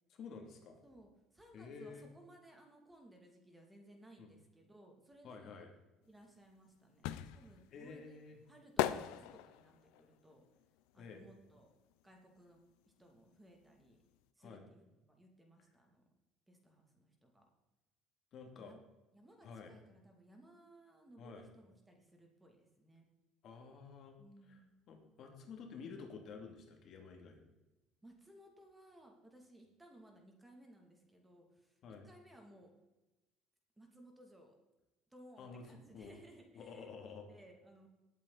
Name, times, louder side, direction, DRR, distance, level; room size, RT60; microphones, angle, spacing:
voice 1, 0.1-0.8 1.5-2.0 4.2-4.3 5.2-5.7 7.7-8.4 11.0-11.2 14.4-14.6 18.3-18.7 19.4-19.7 21.2-21.5 23.4-24.2 24.5-24.6 24.9-27.4 31.8-32.1 35.4-35.7 35.9-36.1 36.5-37.3, left 5 dB, 50° left, 3 dB, 2.5 m, -51 dB
voice 2, 0.8-5.6 6.1-8.2 8.5-10.5 10.9-11.7 12.0-12.6 13.0-14.0 14.4-16.0 16.5-17.5 18.6-18.8 19.1-23.1 24.2-24.6 28.0-32.7 33.8-34.6 35.1-37.9, right 1 dB, 10° right, 2 dB, 2.4 m, -61 dB
sound 1, 6.2-12.0 12.3-13.9 14.1-14.2, left 13 dB, 90° left, 0.6 m, -40 dB
19.5 x 8.5 x 4.0 m, 1.1 s
cardioid pair, 125°, 0 cm